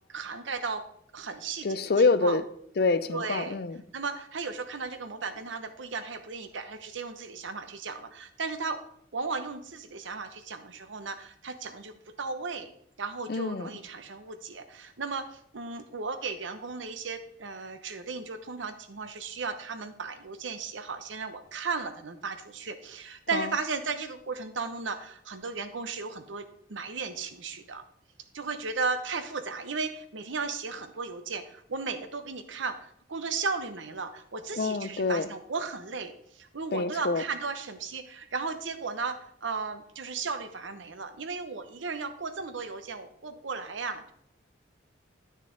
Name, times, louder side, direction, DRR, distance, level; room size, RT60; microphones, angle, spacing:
voice 1, 0.1-0.9 1.1-1.8 2.2-2.4 3.1-3.6 3.9-8.8 9.1-11.9 12.2-12.7 13.0-26.4 26.7-27.8 28.3-44.1, right 4 dB, 80° right, 10 dB, 0.8 m, -35 dB
voice 2, 1.6-2.4 2.8-3.8 13.3-13.7 23.3-23.5 34.6-35.3 36.7-37.2, left 3 dB, 55° left, 14 dB, 0.5 m, -26 dB
9.9 x 6.4 x 3.9 m, 0.70 s
head